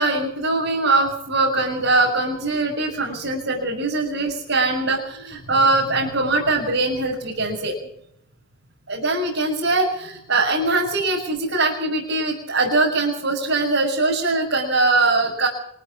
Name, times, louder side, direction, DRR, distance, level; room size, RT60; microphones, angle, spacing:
voice 1, 0.0-7.7 8.9-15.5, right 2 dB, 55° right, -2 dB, 6.5 m, -21 dB
25.5 x 14.0 x 7.3 m, 0.73 s
head